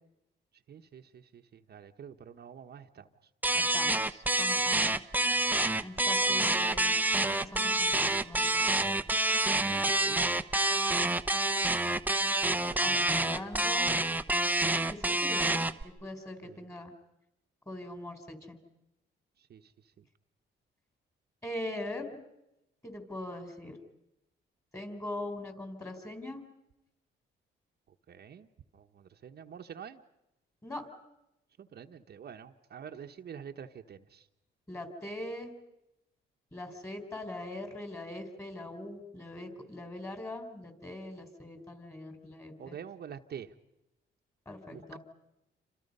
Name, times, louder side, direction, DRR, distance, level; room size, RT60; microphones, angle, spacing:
voice 1, 0.7-3.1 9.6-10.2 12.5-13.4 16.4-16.6 19.4-19.7 20.0-20.1 28.1-28.5 28.7-30.0 31.6-34.3 42.6-43.5 44.7-45.0, right 8 dB, 55° right, 4 dB, 1.1 m, -47 dB
sound 1, 3.4-15.8, right 2 dB, 10° right, 0.8 m, -27 dB
voice 2, 3.5-5.0 5.8-7.0 7.2-8.9 12.8-13.9 14.9-16.9 17.7-18.6 21.4-22.2 22.8-23.8 24.7-26.4 30.6-30.9 34.7-35.5 36.5-42.8 44.5-45.0, left 1 dB, 15° left, 6 dB, 4.3 m, -41 dB
29.0 x 26.0 x 5.5 m, 0.89 s
cardioid pair, 90°, 20 cm